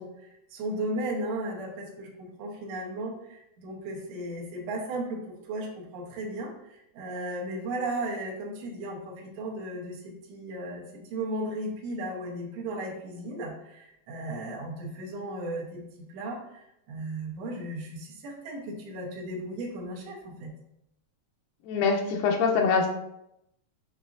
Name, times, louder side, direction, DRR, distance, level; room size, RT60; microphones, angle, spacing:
voice 1, 0.0-10.8 11.1-15.8 16.1-20.5, right 1 dB, 65° right, -3 dB, 1.7 m, -35 dB
voice 2, 21.7-22.9, left 5 dB, 90° left, 2 dB, 2.3 m, -24 dB
6.9 x 2.6 x 2.4 m, 0.82 s
omnidirectional pair, 3.9 m